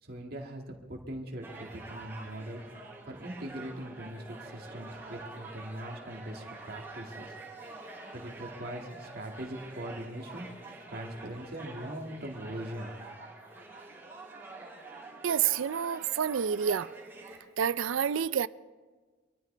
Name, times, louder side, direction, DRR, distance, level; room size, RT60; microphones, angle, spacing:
voice 1, 0.0-2.6 3.1-7.3 8.1-10.5 10.9-12.9, right 1 dB, 50° right, 2.1 m, -41 dB
sound 1, 1.4-17.4, right 3 dB, 10° right, 4.3 m, -47 dB
voice 2, 15.2-16.9 17.6-18.5, right 8 dB, 80° right, 0.4 m, -28 dB
25.0 x 14.0 x 3.4 m
head